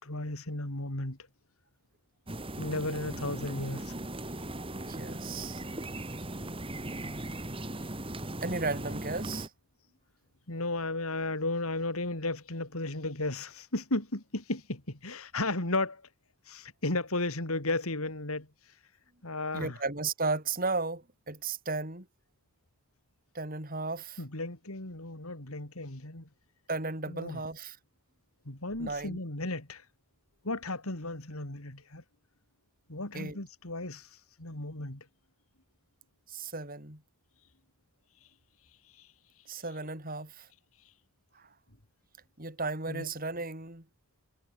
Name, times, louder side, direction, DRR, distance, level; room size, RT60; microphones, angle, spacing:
voice 1, 0.0-1.2 2.6-3.9 10.5-16.0 16.5-18.5 19.2-19.8 24.2-26.3 27.1-27.4 28.5-29.8 30.4-32.0 32.9-34.1 34.4-35.1 39.0-39.1 42.9-43.1, left 2 dB, 75° left, 3.8 m, -34 dB
sound 1, 2.3-9.5, right 1 dB, 25° right, 2.7 m, -38 dB
voice 2, 4.8-5.6 8.4-9.5 19.5-22.1 23.3-24.2 26.7-27.8 28.8-29.2 33.1-33.4 36.3-37.0 39.5-40.5 41.4-41.5 42.4-43.8, right 3 dB, 40° right, 5.2 m, -35 dB
head